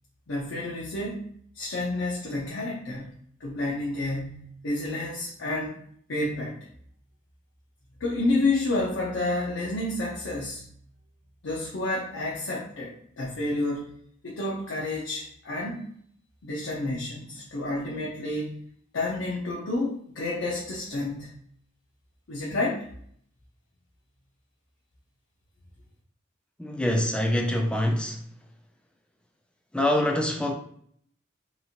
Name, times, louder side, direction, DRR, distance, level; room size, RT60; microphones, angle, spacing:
voice 1, 0.3-1.3 1.5-3.1 3.4-5.8 6.1-6.6 8.0-10.7 11.4-13.9 14.2-15.9 16.4-18.6 18.9-21.3 22.3-22.8, left 2 dB, 85° left, 0.6 m, -30 dB
voice 2, 26.6-28.2 29.7-30.5, left 1 dB, 5° left, 0.3 m, -25 dB
2.9 x 2.4 x 2.8 m
head